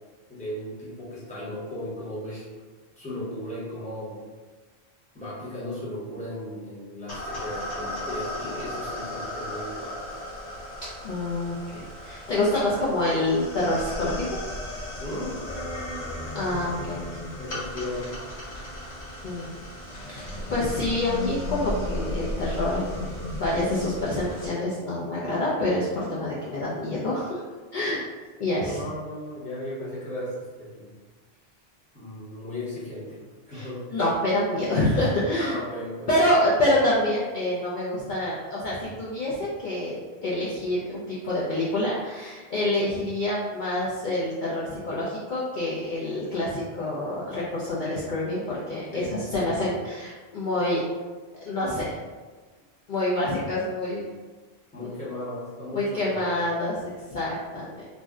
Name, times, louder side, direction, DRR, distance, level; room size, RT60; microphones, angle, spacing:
voice 1, 0.3-2.5 3.0-4.2 5.1-10.0 15.0-15.4 17.4-18.2 28.5-30.9 31.9-33.2 33.5-33.9 35.4-36.3 48.9-49.5 54.7-56.3, left 1 dB, 10° left, -9 dB, 0.8 m, -36 dB
sound 1, 7.1-24.5, left 1 dB, 75° left, 1.1 m, -35 dB
voice 2, 11.0-14.3 16.3-17.3 19.2-19.5 20.1-23.0 23.4-27.4 27.7-28.1 28.4-28.8 33.5-33.7 33.9-35.6 36.1-50.8 51.4-52.0 52.9-54.1 54.8-54.9 55.7-56.8 57.1-57.9, left 1 dB, 55° left, -7 dB, 0.6 m, -27 dB
2.6 x 2.1 x 3.4 m, 1.4 s
omnidirectional pair, 1.1 m